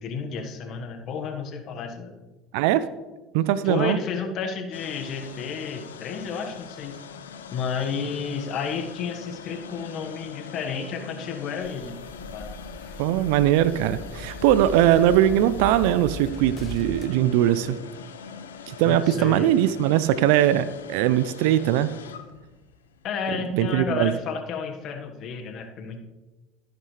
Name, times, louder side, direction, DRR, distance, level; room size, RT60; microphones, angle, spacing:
voice 1, 0.0-2.1 3.6-7.0 7.5-12.0 12.3-12.5 18.8-19.5 23.0-26.0, left 6 dB, 55° left, 5 dB, 1.5 m, -31 dB
voice 2, 2.5-2.8 3.3-4.0 13.0-17.8 18.7-21.9 23.5-24.1, right 12 dB, 70° right, 15 dB, 0.4 m, -21 dB
sound 1, 4.7-23.8, left 7 dB, 90° left, 0.7 m, -42 dB
sound 2, 11.6-17.1, left 3 dB, 35° left, 1.6 m, -39 dB
13.0 x 11.0 x 3.3 m, 1.2 s
hypercardioid pair, 75°, 0 cm